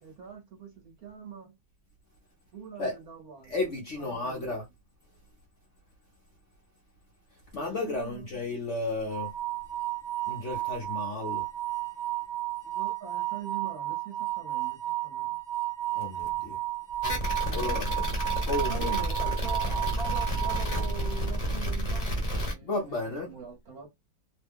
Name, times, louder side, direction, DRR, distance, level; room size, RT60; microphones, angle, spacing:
voice 1, 0.0-1.6 2.5-4.5 7.5-8.4 12.6-15.4 17.4-17.8 18.7-23.0 23.2-23.9, right 5 dB, 55° right, 1.2 m, -43 dB
voice 2, 3.5-4.6 7.5-9.3 10.3-11.4 15.9-16.6 17.5-17.9 18.5-18.9 22.6-23.3, left 2 dB, 55° left, 0.8 m, -33 dB
sound 1, 9.1-21.3, right 16 dB, 85° right, 0.6 m, -33 dB
sound 2, 17.0-22.5, equal, 25° left, 0.9 m, -30 dB
3.2 x 2.2 x 3.5 m
omnidirectional pair, 2.1 m